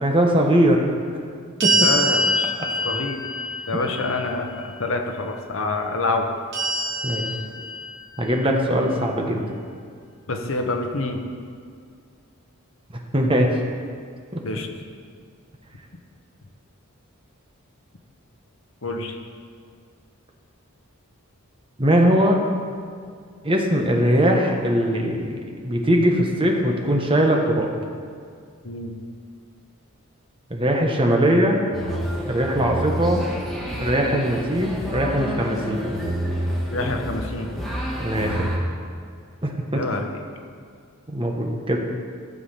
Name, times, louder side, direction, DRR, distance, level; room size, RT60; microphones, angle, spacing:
voice 1, 0.0-0.9 1.6-1.9 3.7-3.8 7.0-7.3 8.2-9.4 13.1-13.6 14.3-14.4 21.8-22.4 23.4-27.7 30.5-31.6 32.2-33.3 33.8-36.0 38.0-38.6 39.4-39.8 41.1-41.8, equal, 25° right, 1 dB, 1.3 m, -21 dB
sound 1, 1.6-4.7 6.5-8.3, right 1 dB, 55° right, 2.6 m, -25 dB
voice 2, 1.7-2.5 2.8-3.2 3.7-6.3 10.3-11.2 14.4-14.7 18.8-19.2 28.6-28.9 36.7-37.5 39.7-40.0, left 3 dB, 65° left, 4 dB, 1.1 m, -26 dB
sound 2, 31.7-38.6, equal, ahead, 1.7 m, -29 dB
15.0 x 6.9 x 5.7 m, 2.2 s
head